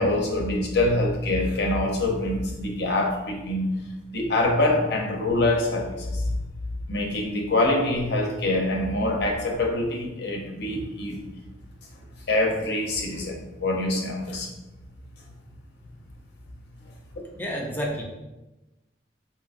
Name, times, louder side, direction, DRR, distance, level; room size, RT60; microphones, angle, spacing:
voice 1, 0.0-3.7 4.1-6.2 6.9-11.2 12.3-14.5, left 2 dB, 65° left, 1 dB, 0.6 m, -25 dB
voice 2, 17.4-18.0, equal, 10° left, -1 dB, 0.4 m, -29 dB
3.7 x 2.7 x 2.5 m, 1.0 s
head